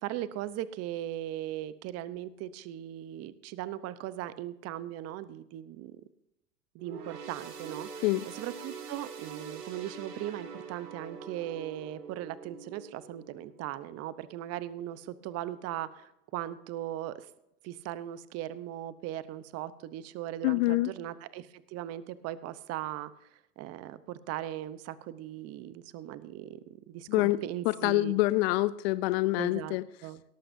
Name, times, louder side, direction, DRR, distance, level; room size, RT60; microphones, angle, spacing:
voice 1, 0.0-6.0 6.7-17.3 17.6-28.1 29.4-29.8 30.0-30.2, right 13 dB, 30° right, 15 dB, 0.8 m, -39 dB
sound 1, 6.8-14.5 14.9-15.1 16.0-16.1, right 6 dB, 80° right, 2.6 m, -45 dB
voice 2, 20.4-20.9 27.1-27.4 27.7-29.8, left 19 dB, 45° left, 15 dB, 0.5 m, -26 dB
18.0 x 13.5 x 2.7 m, 0.84 s
hypercardioid pair, 115°, 46 cm